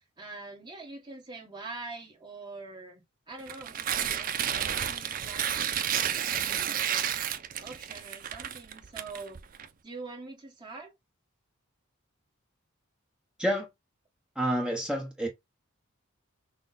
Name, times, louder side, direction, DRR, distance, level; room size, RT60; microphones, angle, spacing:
voice 1, 0.0-5.7 6.2-7.1 7.6-9.4 9.8-10.9, right 3 dB, 20° right, 1.4 m, -44 dB
Tearing, 3.4-9.7, right 9 dB, 40° right, 0.4 m, -31 dB
voice 2, 14.4-15.3, equal, 5° right, 0.9 m, -28 dB
6.1 x 2.2 x 3.9 m
head